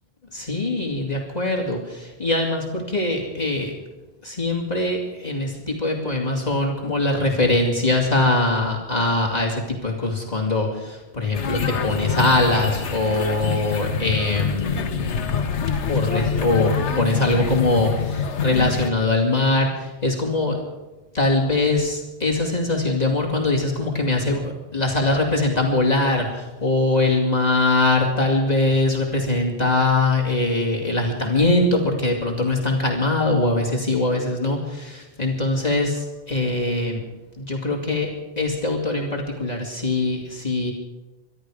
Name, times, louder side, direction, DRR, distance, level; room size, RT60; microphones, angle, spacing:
voice 1, 0.3-3.7 4.2-15.2 15.8-20.6 21.1-37.0 37.4-38.1 38.4-40.7, left 2 dB, 30° left, -2 dB, 2.5 m, -22 dB
sound 1, 11.3-18.9, left 6 dB, 65° left, 1.3 m, -25 dB
24.5 x 11.5 x 4.9 m, 1.1 s
omnidirectional pair, 1.3 m